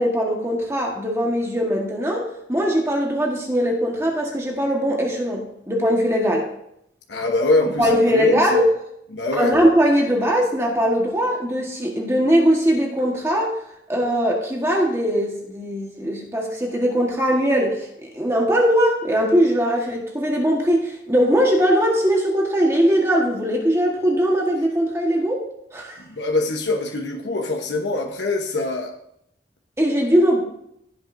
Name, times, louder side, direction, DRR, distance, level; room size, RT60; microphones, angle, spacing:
voice 1, 0.0-6.5 7.8-8.6 9.4-13.6 13.9-25.4 25.7-26.0 29.8-30.4, equal, 15° right, -1 dB, 1.4 m, -20 dB
voice 2, 7.1-8.6 9.1-9.5 26.0-29.0, left 2 dB, 75° left, 1 dB, 1.1 m, -23 dB
15.5 x 7.6 x 2.7 m, 0.76 s
head